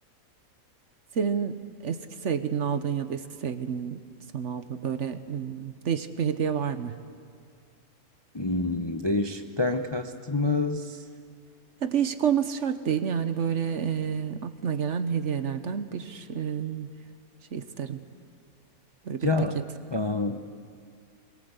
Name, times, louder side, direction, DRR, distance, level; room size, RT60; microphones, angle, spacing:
voice 1, 1.1-4.0 4.3-7.0 11.8-16.9 17.5-18.0 19.0-19.3, right 7 dB, 55° right, 10 dB, 1.2 m, -29 dB
voice 2, 8.3-11.0 19.2-19.6 19.9-20.4, left 3 dB, 25° left, 6 dB, 0.6 m, -27 dB
24.5 x 21.5 x 8.1 m, 2.1 s
omnidirectional pair, 1.6 m